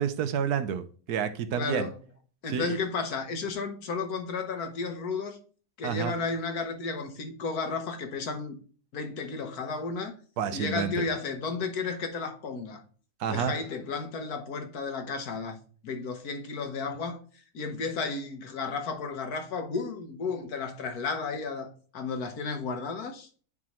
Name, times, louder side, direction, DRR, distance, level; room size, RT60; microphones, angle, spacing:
voice 1, 0.0-1.9 2.5-2.8 5.8-6.1 10.4-11.0 13.2-13.5, right 7 dB, 85° right, 1.3 m, -29 dB
voice 2, 1.5-2.0 2.4-5.4 5.8-8.6 8.9-10.1 10.5-12.8 13.3-15.6 15.8-23.3, left 4 dB, 75° left, 1.6 m, -33 dB
9.6 x 3.7 x 3.0 m
omnidirectional pair, 1.6 m